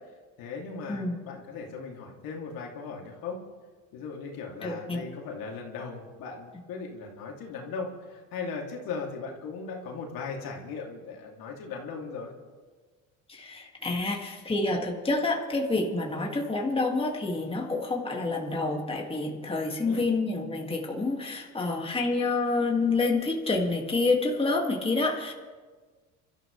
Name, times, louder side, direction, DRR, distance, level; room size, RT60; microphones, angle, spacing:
voice 1, 0.4-3.4 3.9-12.3 19.8-20.1, left 4 dB, 70° left, 0 dB, 3.1 m, -38 dB
voice 2, 0.9-1.2 4.6-5.0 13.3-25.3, left 3 dB, 15° left, 0 dB, 2.3 m, -28 dB
27.5 x 13.5 x 3.4 m, 1.5 s
cardioid pair, 105°, 37 cm